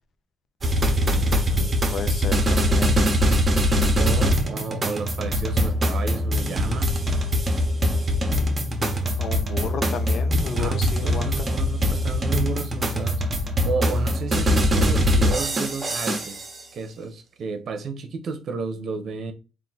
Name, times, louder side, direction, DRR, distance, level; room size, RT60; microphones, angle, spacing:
sound 1, 0.6-16.5, equal, 30° right, 1.1 m, -22 dB
voice 1, 0.9-3.0 9.2-11.5, left 6 dB, 60° left, 0.7 m, -34 dB
voice 2, 4.0-6.9 10.6-10.8 11.0-13.2 13.6-19.3, right 4 dB, 60° right, 0.8 m, -32 dB
3.8 x 2.6 x 4.0 m
cardioid pair, 90°, 0 cm